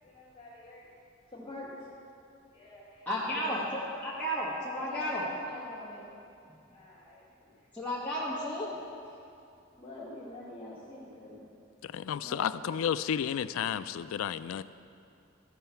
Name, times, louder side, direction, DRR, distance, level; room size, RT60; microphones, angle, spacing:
voice 1, 0.0-0.9 1.3-1.7 2.5-3.7 4.8-6.0 6.7-7.5 9.0-9.1 9.8-11.4, left 1 dB, 25° left, -8 dB, 2.1 m, -46 dB
voice 2, 3.1-5.3 7.7-8.7 12.2-12.6, equal, 10° left, -9 dB, 1.2 m, -33 dB
voice 3, 11.8-14.6, left 8 dB, 80° left, 14 dB, 0.3 m, -32 dB
14.5 x 5.5 x 5.7 m, 2.6 s
head